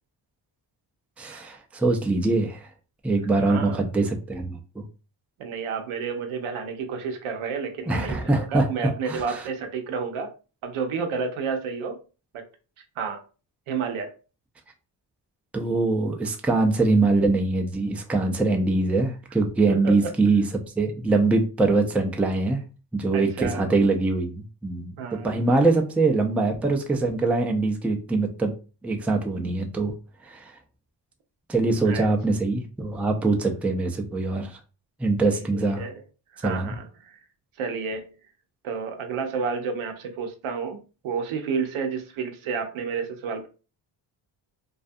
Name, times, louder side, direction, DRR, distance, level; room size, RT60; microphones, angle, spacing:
voice 1, 1.2-2.7 3.0-4.8 7.9-8.6 9.1-9.4 15.5-20.4 20.8-22.6 22.9-25.0 25.2-28.5 28.8-29.9 30.2-30.5 31.5-34.6 35.0-35.9 36.4-36.8, right 3 dB, 5° right, 0.3 m, -23 dB
voice 2, 3.3-3.8 5.4-10.3 10.6-12.0 12.3-12.4 13.0-13.2 13.7-14.1 19.7-20.1 23.1-23.7 25.0-25.7 31.8-32.1 33.3-33.4 35.3-35.5 35.8-36.0 36.3-37.2 37.6-38.1 38.6-43.5, right 5 dB, 80° right, 0.7 m, -31 dB
2.4 x 2.3 x 2.5 m
cardioid pair, 70°, 48 cm